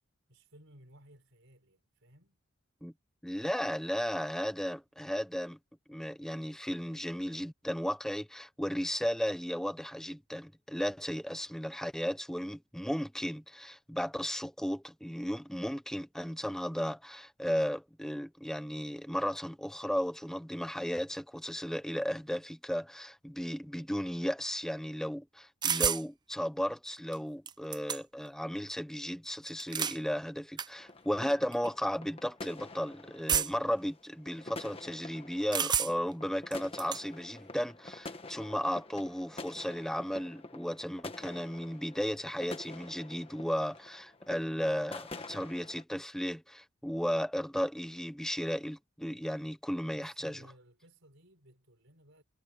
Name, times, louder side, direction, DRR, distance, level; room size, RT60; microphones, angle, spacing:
voice 1, 0.3-2.4 49.9-52.2, right 1 dB, 60° right, 6.8 m, -59 dB
voice 2, 3.2-5.6 5.9-50.5, equal, ahead, 1.0 m, -35 dB
sound 1, 25.6-26.0 27.1-27.2 27.5-28.3 29.5-30.0 30.6-30.7 31.5-31.7 33.3-33.7 35.5-36.1 36.5-37.0, right 7 dB, 20° right, 0.5 m, -30 dB
sound 2, 30.8-45.8, left 2 dB, 25° left, 1.4 m, -48 dB
head